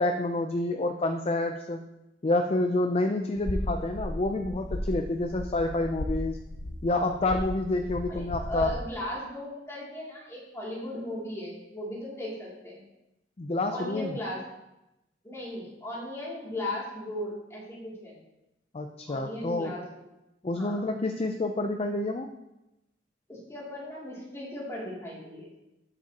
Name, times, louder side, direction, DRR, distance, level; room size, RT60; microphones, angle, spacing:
voice 1, 0.0-1.8 2.2-6.4 6.8-8.7 13.4-14.2 18.7-19.7 20.4-22.3, left 2 dB, 35° left, 5 dB, 0.5 m, -28 dB
sound 1, 3.4-8.7, left 1 dB, 70° left, 0.9 m, -35 dB
voice 2, 8.1-12.8 13.7-14.4 15.2-18.2 19.1-19.9 20.5-20.9 23.3-25.6, left 1 dB, 15° left, -6 dB, 2.7 m, -37 dB
9.5 x 7.4 x 2.9 m, 0.92 s
head